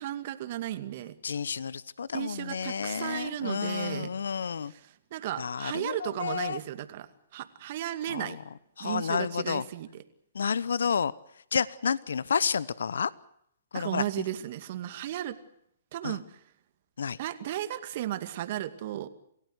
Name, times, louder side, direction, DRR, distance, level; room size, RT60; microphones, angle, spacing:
voice 1, 0.0-1.2 2.1-4.1 4.7-8.4 8.8-10.0 13.7-15.4 15.9-16.4 17.2-19.1, right 12 dB, 50° right, 10 dB, 2.3 m, -35 dB
voice 2, 1.2-4.7 5.4-6.6 8.1-8.4 8.8-9.6 10.3-11.1 11.5-13.1 13.7-14.0 16.0-16.2 17.0-17.2, left 6 dB, 75° left, 20 dB, 0.9 m, -30 dB
28.0 x 16.5 x 8.1 m, 0.73 s
hypercardioid pair, 130°, 0 cm